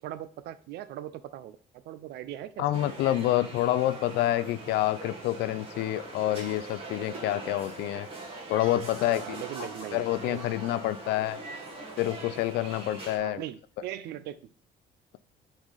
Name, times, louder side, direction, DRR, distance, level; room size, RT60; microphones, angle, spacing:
voice 1, 0.0-3.0 9.1-10.4 13.2-14.4, right 12 dB, 80° right, 0.6 m, -40 dB
voice 2, 2.6-8.1 8.5-11.4 12.0-13.4, left 14 dB, 85° left, 0.5 m, -28 dB
sound 1, 2.7-13.2, right 2 dB, 35° right, 1.8 m, -42 dB
6.0 x 4.0 x 3.9 m
cardioid pair, 110°, 17 cm